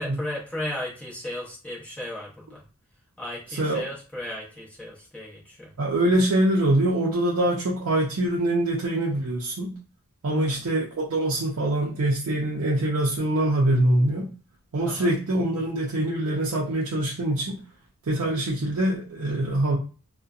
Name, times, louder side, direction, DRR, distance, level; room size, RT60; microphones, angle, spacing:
voice 1, 0.0-2.6 3.2-5.7 10.3-10.6 14.8-15.1, left 1 dB, 5° left, -5 dB, 0.8 m, -35 dB
voice 2, 5.8-9.7 10.2-14.3 14.7-17.6 18.1-19.8, right 1 dB, 80° right, -3 dB, 0.5 m, -24 dB
2.6 x 2.1 x 2.3 m, 0.35 s
head